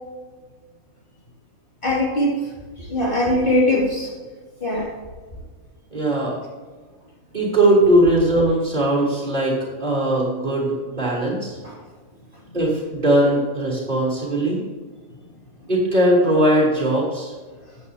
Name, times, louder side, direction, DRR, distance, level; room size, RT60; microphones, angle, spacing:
voice 1, 1.8-4.1 4.6-4.9 11.6-11.8, left 1 dB, 35° left, -5 dB, 2.6 m, -21 dB
voice 2, 5.9-6.4 7.3-11.5 12.5-14.6 15.7-17.3, right 1 dB, 30° right, -4 dB, 3.4 m, -19 dB
14.0 x 9.2 x 2.8 m, 1.4 s
omnidirectional pair, 1.5 m